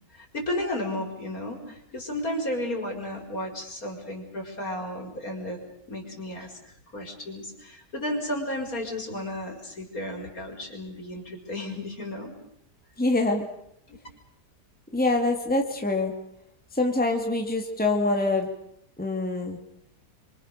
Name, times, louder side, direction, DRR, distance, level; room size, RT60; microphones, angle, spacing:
voice 1, 0.1-5.6 5.9-6.6 6.9-12.3 13.9-14.0, left 1 dB, 55° left, 3 dB, 5.3 m, -33 dB
voice 2, 13.0-13.4 14.9-16.1 16.7-18.5 19.0-19.6, left 2 dB, 5° left, 2 dB, 2.6 m, -25 dB
29.0 x 25.0 x 6.8 m, 0.73 s
omnidirectional pair, 1.8 m